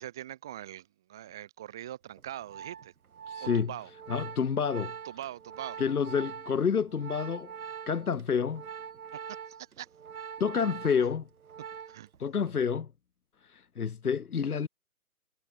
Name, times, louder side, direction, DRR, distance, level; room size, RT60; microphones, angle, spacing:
voice 1, 0.0-2.9 3.4-3.9 5.0-5.8 9.5-9.9 11.9-12.1, right 12 dB, 5° right, 0.6 m, -42 dB
Organ, 2.2-12.2 12.5-12.8, right 7 dB, 70° right, 1.7 m, -43 dB
voice 2, 3.3-3.7 4.1-4.9 5.8-7.5 7.9-8.6 10.4-11.3 12.2-12.9 13.4-14.7, left 6 dB, 75° left, 2.4 m, -29 dB
hypercardioid pair, 160°, 45 cm